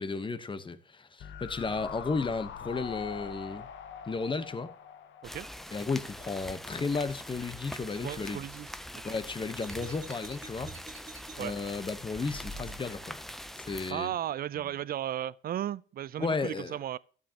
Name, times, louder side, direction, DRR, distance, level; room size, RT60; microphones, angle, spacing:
voice 1, 0.0-3.7 4.1-4.7 5.7-8.4 9.0-10.7 11.4-13.2 13.7-14.2 16.2-16.8, left 4 dB, 25° left, 0.9 m, -33 dB
sound 1, 1.2-6.4 6.7-6.8, left 8 dB, 70° left, 0.8 m, -44 dB
sound 2, 5.2-13.9, equal, ahead, 0.5 m, -44 dB
voice 2, 8.0-8.7 9.0-9.1 11.4-11.6 13.9-17.0, right 11 dB, 50° right, 0.4 m, -35 dB
sound 3, 9.6-11.3 12.2-13.2, right 2 dB, 20° right, 2.3 m, -45 dB
12.0 x 7.5 x 2.9 m
cardioid pair, 90°, 20 cm